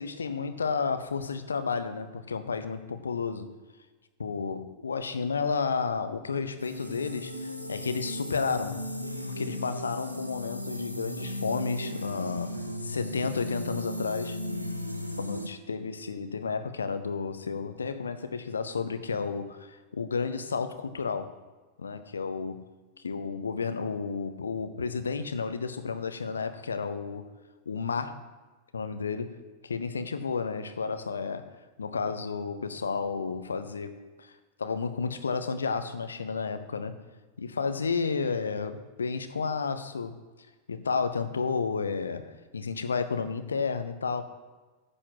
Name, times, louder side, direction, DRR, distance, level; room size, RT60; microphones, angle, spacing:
voice 1, 0.0-3.5 4.2-8.8 9.4-12.6 12.8-14.4 15.2-21.3 21.8-22.7 23.0-27.2 27.7-28.2 28.7-29.4 29.6-31.4 31.8-34.3 34.6-36.9 37.4-40.1 40.7-44.2, left 5 dB, 70° left, 9 dB, 0.8 m, -32 dB
sound 1, 6.6-15.5, left 1 dB, 90° right, 0.8 m, -36 dB
10.0 x 4.3 x 7.7 m, 1.3 s
figure-of-eight pair, 90°, 0 cm